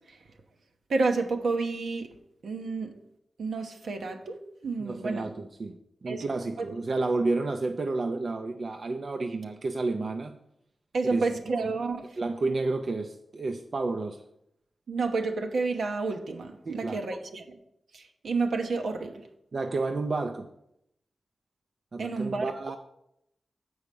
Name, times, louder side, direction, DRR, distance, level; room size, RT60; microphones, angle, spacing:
voice 1, 0.9-2.1 2.4-2.9 3.4-4.4 4.6-5.3 6.1-6.2 10.9-12.0 14.9-17.4 17.9-19.2 22.0-22.5, right 3 dB, 80° right, 4 dB, 1.0 m, -30 dB
voice 2, 4.8-10.3 11.1-11.7 12.2-14.2 16.7-17.1 19.5-20.5 21.9-22.8, right 3 dB, 55° right, 5 dB, 0.5 m, -31 dB
7.3 x 4.8 x 6.8 m, 0.78 s
wide cardioid pair, 80°, 0 cm